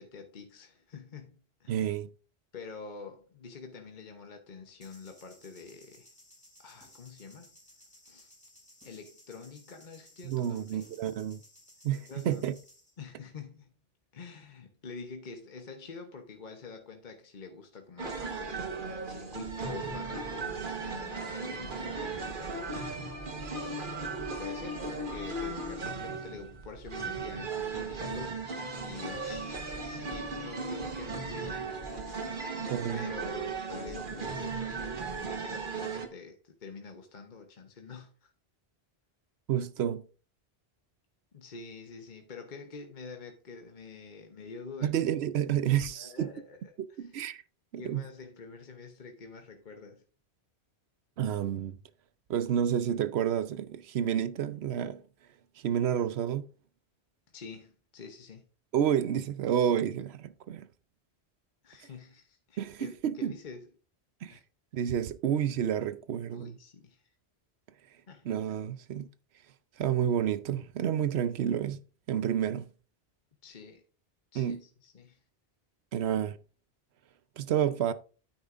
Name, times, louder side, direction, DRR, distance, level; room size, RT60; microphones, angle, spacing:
voice 1, 0.0-1.9 2.5-6.1 6.6-7.6 8.0-8.3 8.8-10.9 12.1-12.4 13.0-13.7 14.1-22.5 23.5-23.8 24.2-32.5 32.9-38.3 41.3-45.0 45.9-47.1 47.8-50.0 57.3-58.4 61.6-63.7 64.3-64.4 66.3-67.1 68.1-68.3 73.4-73.8 74.3-75.2, left 4 dB, 45° left, 1.0 m, -47 dB
voice 2, 1.7-2.1 10.2-11.4 11.8-12.5 32.7-33.1 39.5-40.0 44.8-46.3 47.0-47.4 47.7-48.0 51.2-51.8 52.3-55.0 55.6-56.4 58.7-60.7 62.6-63.3 64.2-64.4 64.7-66.6 68.2-69.1 69.8-71.8 72.1-72.6 74.3-74.6 75.9-76.4 77.4-77.9, right 9 dB, 75° right, 0.9 m, -29 dB
sound 1, 4.8-12.9, left 1 dB, 5° left, 2.9 m, -58 dB
sound 2, 18.0-36.1, right 3 dB, 50° right, 1.4 m, -36 dB
9.4 x 8.8 x 2.5 m
omnidirectional pair, 1.1 m